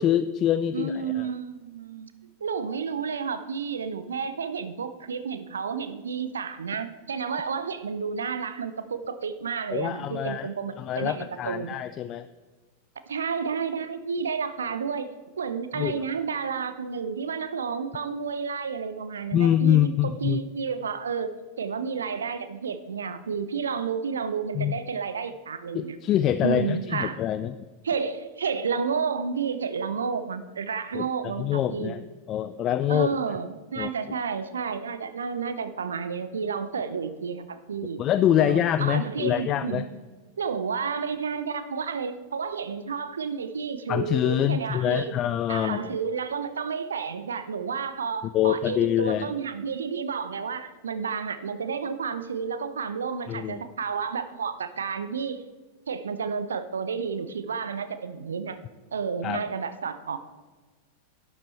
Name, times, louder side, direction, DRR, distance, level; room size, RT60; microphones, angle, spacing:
voice 1, 0.0-1.3 9.7-10.5 10.8-12.3 15.7-16.1 19.3-20.4 24.5-24.8 25.7-27.5 30.9-31.1 31.4-32.0 32.3-33.1 33.8-33.9 38.0-39.8 43.9-46.0 48.3-49.3 53.3-53.6 59.2-59.4, left 11 dB, 35° left, 13 dB, 0.4 m, -25 dB
voice 2, 0.7-2.1 2.4-11.8 13.1-15.1 15.4-26.0 26.4-27.2 27.8-32.0 32.9-38.0 38.4-39.9 40.4-45.2 45.5-55.4 55.9-58.6 58.9-60.2, right 6 dB, 70° right, 11 dB, 0.7 m, -31 dB
11.5 x 9.5 x 4.2 m, 1.3 s
figure-of-eight pair, 90°, 0 cm